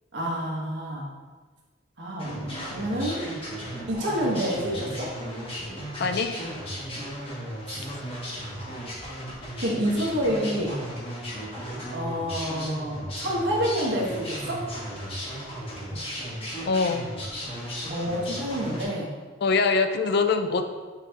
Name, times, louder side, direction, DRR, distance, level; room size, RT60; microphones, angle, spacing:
voice 1, 0.1-1.1 2.0-3.3 3.9-5.1 7.7-7.8 9.6-10.9 11.9-14.6 17.9-19.1, equal, 70° right, -3 dB, 1.4 m, -28 dB
sound 1, 2.2-18.8, equal, 30° left, 1.4 m, -35 dB
voice 2, 6.0-6.4 16.7-17.1 19.4-20.6, left 4 dB, 60° left, 8 dB, 0.4 m, -23 dB
5.9 x 5.7 x 2.9 m, 1.4 s
head